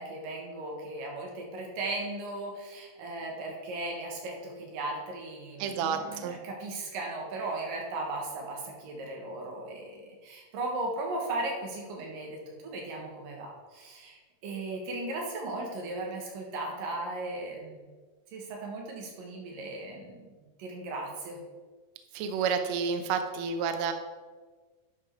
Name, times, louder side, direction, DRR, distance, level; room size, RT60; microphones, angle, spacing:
voice 1, 0.0-17.9 18.3-20.3 20.6-21.4, right 2 dB, 90° right, 0 dB, 3.2 m, -37 dB
voice 2, 5.6-6.4 22.1-23.9, right 6 dB, 75° right, 7 dB, 1.7 m, -30 dB
10.5 x 5.2 x 4.5 m, 1.4 s
omnidirectional pair, 3.8 m